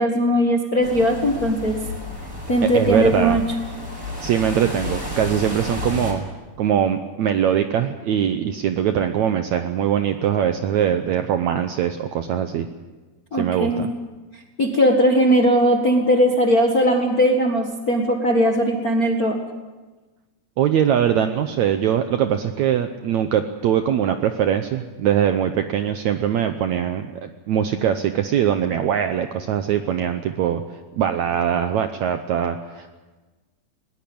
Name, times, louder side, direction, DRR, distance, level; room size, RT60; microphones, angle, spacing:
voice 1, 0.0-1.8 2.5-3.4 13.3-13.9 14.6-19.4, equal, 45° left, 2 dB, 1.2 m, -19 dB
sound 1, 0.8-6.1, left 2 dB, 15° right, 5.6 m, -31 dB
voice 2, 2.7-3.4 4.2-6.2 6.6-12.7 13.4-13.9 20.6-30.6 30.9-32.9, right 9 dB, 75° right, 8 dB, 1.7 m, -22 dB
20.0 x 19.5 x 8.7 m, 1.2 s
omnidirectional pair, 4.2 m